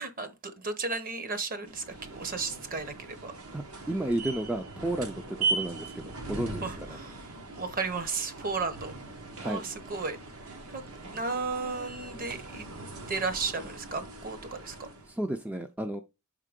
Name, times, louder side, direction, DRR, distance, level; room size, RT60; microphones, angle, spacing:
voice 1, 0.0-3.3 6.6-8.9 9.4-10.2 10.7-12.7 13.1-14.9, right 4 dB, 40° right, 0.9 m, -34 dB
sound 1, 1.6-15.1, right 3 dB, 75° right, 1.2 m, -39 dB
voice 2, 3.5-7.0 9.4-9.6 15.1-16.0, right 1 dB, 5° right, 0.3 m, -33 dB
6.5 x 3.7 x 5.1 m
head